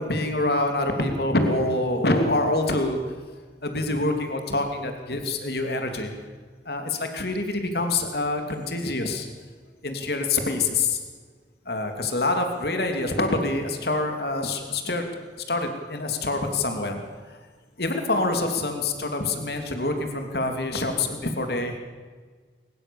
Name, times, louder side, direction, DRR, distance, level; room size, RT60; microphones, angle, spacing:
voice 1, 0.0-3.1 3.6-6.1 6.6-9.3 9.8-11.0 11.7-15.2 15.5-17.0 17.8-21.8, left 2 dB, 65° left, 5 dB, 2.9 m, -26 dB
22.5 x 21.0 x 7.1 m, 1.5 s
head